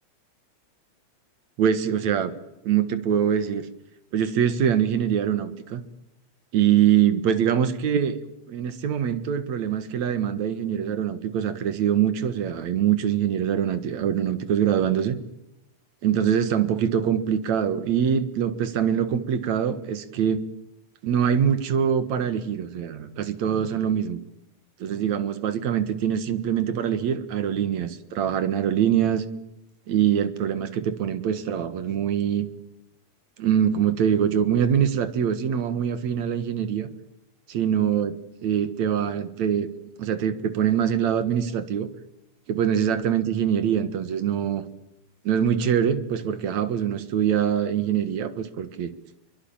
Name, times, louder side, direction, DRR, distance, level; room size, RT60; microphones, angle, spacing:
voice 1, 1.6-2.3 2.6-3.7 4.1-5.8 6.5-8.2 8.5-15.2 16.0-20.4 21.0-24.2 24.8-29.2 29.9-32.5 33.4-36.9 37.5-39.7 40.0-41.9 42.5-44.6 45.2-48.9, right 9 dB, 65° right, 12 dB, 2.8 m, -24 dB
23.5 x 23.5 x 8.8 m, 0.86 s
omnidirectional pair, 3.5 m